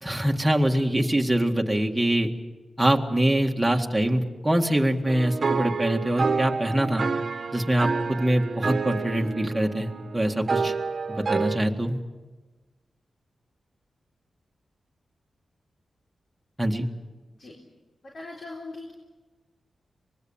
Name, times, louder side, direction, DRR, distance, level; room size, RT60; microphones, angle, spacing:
voice 1, 0.0-2.3 2.8-7.1 7.5-10.7 11.1-12.0 16.6-16.9, right 1 dB, 5° right, 1 dB, 1.9 m, -24 dB
sound 1, 5.1-11.6, right 5 dB, 50° right, 1.3 m, -29 dB
voice 2, 18.0-18.9, left 2 dB, 55° left, -1 dB, 4.0 m, -40 dB
25.0 x 21.0 x 7.3 m, 1.2 s
wide cardioid pair, 95°, 0 cm